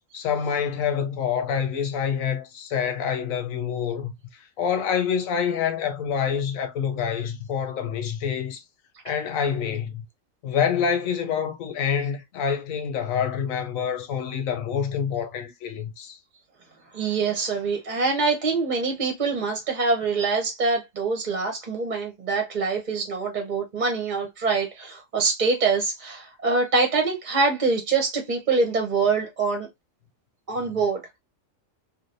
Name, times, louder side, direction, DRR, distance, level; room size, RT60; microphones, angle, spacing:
voice 1, 0.1-4.1 4.6-8.6 9.0-10.0 10.4-16.2, left 7 dB, 85° left, 1.1 m, -26 dB
voice 2, 16.9-29.7 30.5-31.2, right 4 dB, 40° right, 0.8 m, -24 dB
3.3 x 2.5 x 2.6 m
omnidirectional pair, 1.4 m